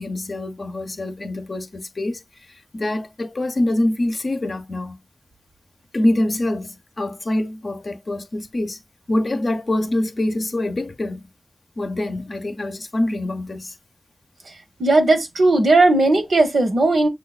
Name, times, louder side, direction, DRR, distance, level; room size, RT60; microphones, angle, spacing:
voice 1, 0.0-2.2 2.7-5.0 5.9-8.8 9.1-11.3 11.8-13.7, left 1 dB, 60° left, 0.6 m, -25 dB
voice 2, 14.8-17.1, right 2 dB, 85° right, 0.8 m, -16 dB
6.2 x 2.3 x 2.3 m
cardioid pair, 40°, 0 cm